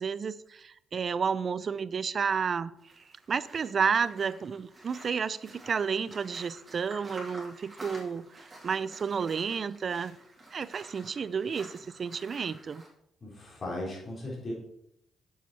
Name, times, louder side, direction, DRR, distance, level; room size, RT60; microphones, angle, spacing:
voice 1, 0.0-2.7 3.0-10.2 10.5-12.8, right 6 dB, 45° right, 0.4 m, -31 dB
sound 1, 2.8-12.9, right 1 dB, 20° right, 3.3 m, -50 dB
voice 2, 13.2-14.5, left 1 dB, 35° left, 3.6 m, -37 dB
7.2 x 7.1 x 4.2 m
cardioid pair, 90°, 0 cm